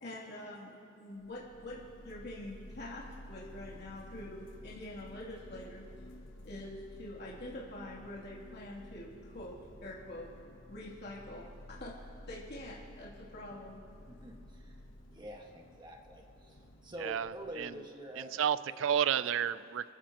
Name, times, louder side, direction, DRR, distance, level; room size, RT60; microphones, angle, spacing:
voice 1, 0.0-5.8 6.4-9.5 9.8-10.3 10.7-11.9 12.3-13.8, left 1 dB, 60° left, -6 dB, 2.9 m, -45 dB
sound 1, 1.2-17.8, left 1 dB, 80° left, 1.2 m, -53 dB
voice 2, 14.1-14.8 15.1-18.4 18.6-18.7 19.2-19.3, right 1 dB, 25° right, 0 dB, 1.6 m, -47 dB
voice 3, 17.0-17.3 17.6-17.7 18.2-19.9, right 9 dB, 80° right, 17 dB, 0.4 m, -31 dB
27.0 x 14.5 x 3.0 m, 2.5 s
head